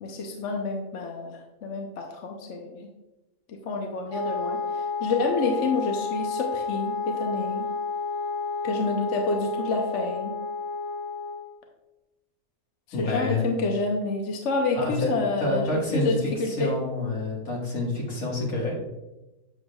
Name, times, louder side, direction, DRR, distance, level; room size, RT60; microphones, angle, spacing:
voice 1, 0.0-2.9 3.5-7.7 8.6-10.4 13.0-16.7, left 3 dB, 60° left, 2 dB, 1.0 m, -28 dB
Wind instrument woodwind instrument, 4.1-11.5, left 4 dB, 70° right, 1.4 m, -31 dB
voice 2, 12.9-13.5 14.8-15.1 15.4-18.7, left 2 dB, 75° left, -3 dB, 2.2 m, -28 dB
7.7 x 6.5 x 2.3 m, 1.0 s
omnidirectional pair, 1.5 m